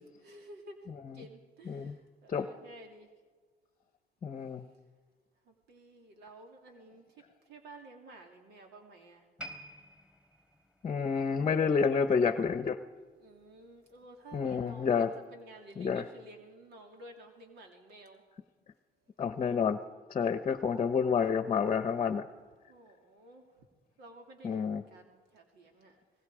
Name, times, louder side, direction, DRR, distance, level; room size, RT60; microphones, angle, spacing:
voice 1, 0.2-3.1 5.5-7.0 7.5-9.2 13.2-18.2 22.7-23.4 24.0-26.0, right 1 dB, 75° right, 3 dB, 3.0 m, -53 dB
voice 2, 4.2-4.6 10.8-12.8 14.3-15.1 15.8-16.1 19.2-19.8 20.1-22.2 24.4-24.8, left 6 dB, 35° left, 10 dB, 0.9 m, -29 dB
sound 1, 9.4-12.7 13.0-13.3 13.9-14.0, equal, 5° right, 3.6 m, -50 dB
30.0 x 20.0 x 5.0 m, 1.4 s
cardioid pair, 110°, 17 cm